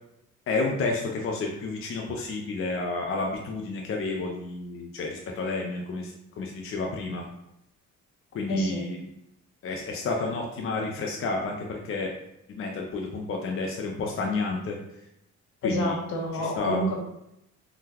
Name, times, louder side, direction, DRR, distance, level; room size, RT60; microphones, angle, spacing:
voice 1, 0.5-7.3 8.3-9.0 9.6-12.1 12.5-14.8 15.6-15.9 16.4-16.9, left 3 dB, 45° left, 0 dB, 0.5 m, -30 dB
voice 2, 8.5-8.8 15.6-17.0, equal, 75° left, -1 dB, 0.9 m, -28 dB
3.7 x 2.2 x 2.8 m, 0.83 s
cardioid pair, 90°, 30 cm